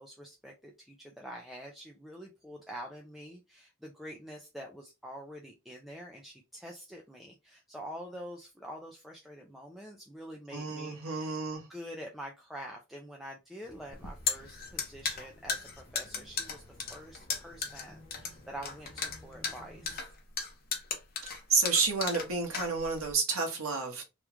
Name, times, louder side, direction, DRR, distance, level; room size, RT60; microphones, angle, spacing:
voice 1, 0.0-11.3 11.7-20.1, equal, ahead, 0.4 m, -46 dB
voice 2, 10.5-11.7 21.2-24.0, right 4 dB, 80° right, 1.1 m, -30 dB
sound 1, 13.6-20.0, left 1 dB, 25° left, 1.3 m, -56 dB
sound 2, 13.9-23.1, left 6 dB, 45° left, 0.8 m, -36 dB
3.0 x 2.4 x 3.4 m
head